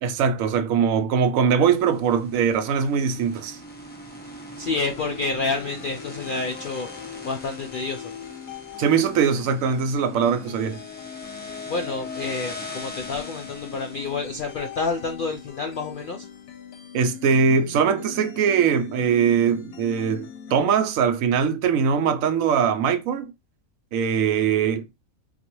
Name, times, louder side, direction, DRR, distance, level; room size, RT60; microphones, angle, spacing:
voice 1, 0.0-3.6 8.8-10.8 16.9-23.3 23.9-24.8, right 6 dB, 75° right, 1.0 m, -21 dB
sound 1, 1.7-15.9, left 2 dB, 15° left, 0.4 m, -41 dB
voice 2, 4.6-6.9 7.2-8.1 11.7-16.2, left 3 dB, 65° left, 0.5 m, -29 dB
sound 2, 4.7-20.7, left 8 dB, 90° left, 1.1 m, -41 dB
4.0 x 2.4 x 3.0 m
omnidirectional pair, 1.4 m